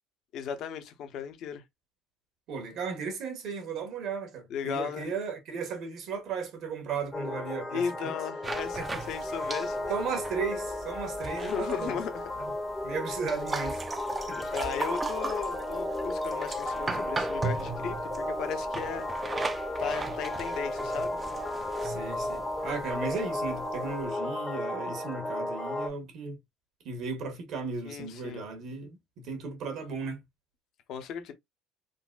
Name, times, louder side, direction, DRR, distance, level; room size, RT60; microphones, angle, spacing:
voice 1, 0.3-1.6 4.5-5.1 7.7-10.0 11.4-12.3 14.3-19.1 19.8-21.2 27.8-28.4 30.9-31.3, left 7 dB, 65° left, 0.7 m, -36 dB
voice 2, 2.5-8.1 8.8-9.0 9.9-12.0 12.4-12.5 12.8-13.8 14.3-14.6 21.8-26.4 26.8-30.2, right 5 dB, 65° right, 1.3 m, -36 dB
sound 1, 7.1-25.9, left 1 dB, 20° left, 0.7 m, -34 dB
sound 2, 8.4-24.1, right 3 dB, 25° right, 0.4 m, -39 dB
3.8 x 2.2 x 2.4 m
supercardioid pair, 95°, 0 cm